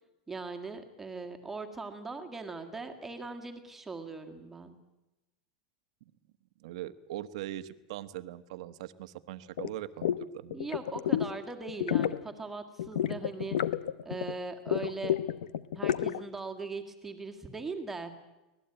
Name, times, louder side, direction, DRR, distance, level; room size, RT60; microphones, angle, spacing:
voice 1, 0.3-4.8 10.5-13.6 14.1-15.2 15.7-18.1, right 3 dB, 5° right, 5 dB, 1.8 m, -40 dB
voice 2, 6.6-10.6, right 14 dB, 55° right, 12 dB, 1.2 m, -41 dB
sound 1, 9.6-9.7 10.0-10.2 10.5-11.3 11.7-12.2 12.8-14.3 14.7-16.2, left 10 dB, 90° left, 1.0 m, -30 dB
24.5 x 18.5 x 9.0 m, 1.0 s
supercardioid pair, 175°, 4 cm